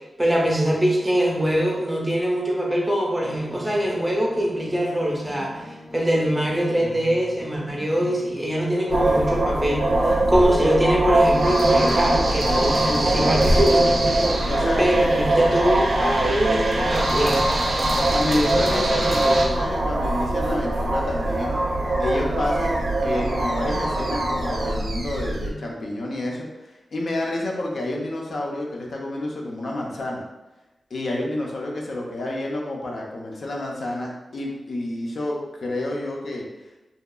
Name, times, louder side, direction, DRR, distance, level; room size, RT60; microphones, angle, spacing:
voice 1, 0.2-13.9 14.8-17.5, equal, 15° right, -3 dB, 0.5 m, -23 dB
sound 1, 3.2-12.2 14.6-22.9, equal, 80° left, 1.4 m, -42 dB
sound 2, 8.9-25.5, right 1 dB, 75° right, 0.4 m, -22 dB
voice 2, 12.9-13.3 14.5-15.0 17.9-21.6 22.0-30.2 30.9-36.4, left 1 dB, 65° left, -2 dB, 0.4 m, -29 dB
2.7 x 2.3 x 2.3 m, 1.1 s
wide cardioid pair, 155°, 0 cm